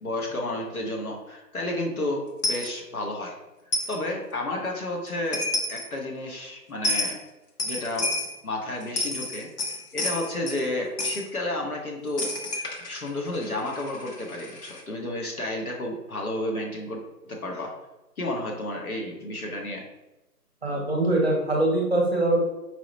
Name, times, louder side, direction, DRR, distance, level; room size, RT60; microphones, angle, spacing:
voice 1, 0.0-3.3 3.9-7.2 7.6-8.1 8.4-12.3 12.5-17.7 18.2-19.8, left 1 dB, 65° left, 0 dB, 1.1 m, -31 dB
Coin (dropping), 2.4-2.7 3.7-4.0 5.1-5.2 5.3-5.9 6.8-7.2 7.6-8.3 8.8-10.6 11.0-11.2 12.2-14.8, left 2 dB, 85° left, 1.0 m, -30 dB
voice 2, 20.6-22.4, right 1 dB, 40° right, -2 dB, 0.8 m, -23 dB
4.8 x 2.1 x 3.9 m, 1.0 s
figure-of-eight pair, 180°, 47 cm